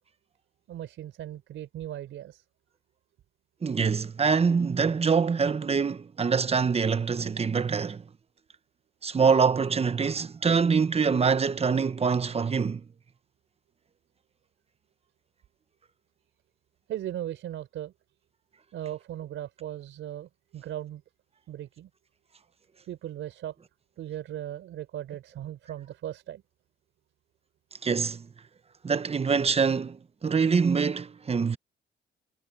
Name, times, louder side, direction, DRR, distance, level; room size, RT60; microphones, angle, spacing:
voice 1, 0.7-2.4 16.9-17.9 18.7-21.0 21.5-21.9 22.9-23.5 24.0-26.4, right 12 dB, 80° right, 4.2 m, -37 dB
voice 2, 3.6-8.0 9.0-12.8 27.8-28.3 28.8-31.6, right 5 dB, 30° right, 1.0 m, -25 dB
cardioid pair, 90°, 20 cm